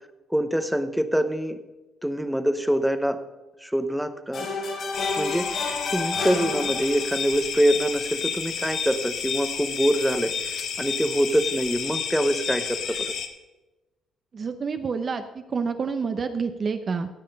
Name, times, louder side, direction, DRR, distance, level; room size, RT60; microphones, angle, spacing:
voice 1, 0.3-1.6 2.0-3.2 3.6-4.5 5.2-5.5 5.9-10.3 10.8-13.1, equal, ahead, 10 dB, 0.8 m, -24 dB
sound 1, 4.3-7.3, left 3 dB, 50° left, 3.6 m, -30 dB
sound 2, 4.9-13.3, left 7 dB, 65° left, 1.6 m, -31 dB
voice 2, 14.3-17.1, right 5 dB, 35° right, 8 dB, 0.7 m, -28 dB
17.5 x 6.5 x 5.2 m, 1.1 s
cardioid pair, 120°, 0 cm